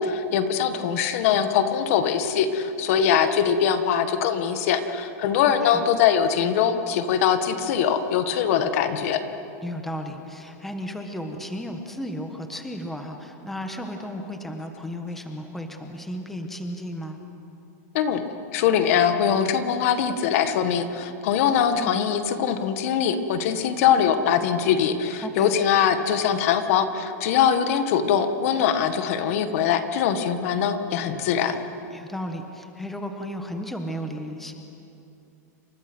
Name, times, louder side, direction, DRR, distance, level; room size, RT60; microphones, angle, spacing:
voice 1, 0.0-9.2 17.9-18.2 18.5-31.6, left 8 dB, 50° left, 8 dB, 1.8 m, -22 dB
voice 2, 5.4-5.9 9.6-17.2 21.7-22.0 25.2-25.5 31.9-34.5, equal, 5° left, 4 dB, 1.5 m, -34 dB
29.5 x 26.0 x 6.3 m, 2.8 s
supercardioid pair, 165°, 9 cm